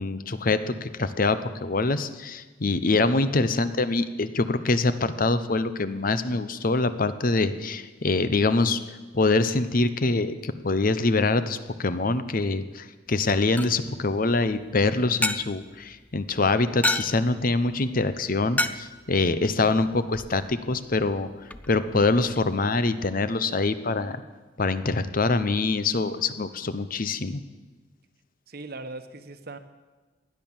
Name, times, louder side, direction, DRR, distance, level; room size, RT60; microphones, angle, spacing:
voice 1, 0.0-8.8 9.1-21.3 21.7-24.2 24.6-27.4, left 3 dB, 45° left, 13 dB, 0.8 m, -24 dB
sound 1, 13.1-22.4, left 2 dB, 10° left, 0.5 m, -34 dB
voice 2, 28.5-29.6, right 3 dB, 55° right, 9 dB, 1.1 m, -39 dB
16.0 x 10.5 x 7.2 m, 1.3 s
head